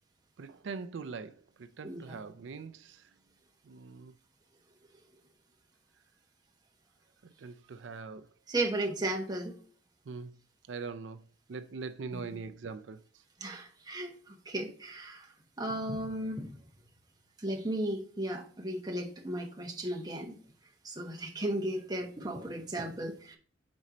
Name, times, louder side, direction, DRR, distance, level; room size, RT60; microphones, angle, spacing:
voice 1, 0.4-3.0 3.7-4.1 7.2-8.3 10.1-10.4 10.7-11.2 11.5-13.0, right 4 dB, 85° right, 0.4 m, -42 dB
voice 2, 1.8-2.2 8.5-9.5 12.1-12.2 13.4-14.2 14.5-15.3 15.6-16.5 17.4-20.4 20.8-23.4, right 1 dB, 20° right, 1.0 m, -35 dB
5.2 x 4.2 x 5.9 m
head